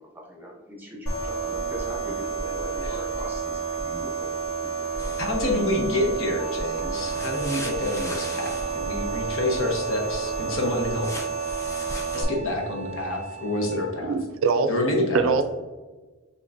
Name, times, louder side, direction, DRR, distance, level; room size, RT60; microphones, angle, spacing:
voice 1, 0.3-3.4 3.7-5.1, equal, 10° right, -2 dB, 0.9 m, -40 dB
sound 1, 1.1-12.2, right 5 dB, 85° left, 1.4 m, -30 dB
sound 2, 5.0-5.3 6.9-8.9 11.0-12.2, left 2 dB, 15° left, 0.5 m, -39 dB
voice 2, 5.2-11.1 12.1-14.1 14.7-15.3, left 1 dB, 70° left, 1 dB, 1.0 m, -27 dB
Wind instrument woodwind instrument, 6.4-14.0, right 4 dB, 40° left, 1.0 m, -40 dB
voice 3, 14.0-14.7 15.1-15.4, right 5 dB, 65° right, 10 dB, 0.4 m, -22 dB
5.9 x 3.0 x 2.5 m, 1.3 s
head